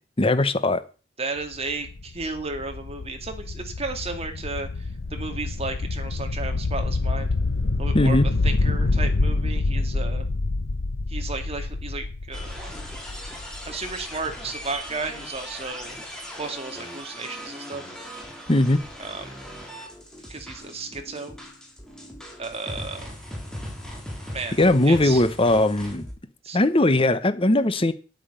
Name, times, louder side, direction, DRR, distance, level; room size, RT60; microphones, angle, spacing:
voice 1, 0.2-0.8 7.9-8.3 18.5-18.8 24.6-26.1 26.5-27.9, left 2 dB, 30° left, 1.0 m, -19 dB
voice 2, 1.2-7.3 7.8-8.2 8.4-10.3 11.1-12.8 13.7-16.0 16.4-17.9 19.0-19.4 20.3-21.3 22.4-23.1 24.3-24.6 24.9-25.2 26.4-26.9, right 3 dB, 30° right, 2.2 m, -34 dB
sound 1, 1.4-15.1, left 3 dB, 85° left, 0.8 m, -27 dB
sound 2, 12.3-26.1, equal, 5° left, 3.3 m, -39 dB
9.7 x 9.0 x 6.8 m
head